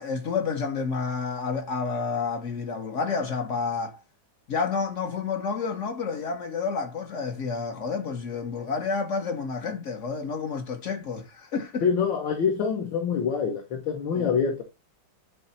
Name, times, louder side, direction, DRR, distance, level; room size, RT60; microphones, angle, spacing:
voice 1, 0.0-4.0 4.5-11.8 14.2-14.3, left 5 dB, 55° left, 0.9 m, -30 dB
voice 2, 11.8-14.6, left 6 dB, 75° left, 2.0 m, -25 dB
8.5 x 3.4 x 4.1 m
omnidirectional pair, 2.1 m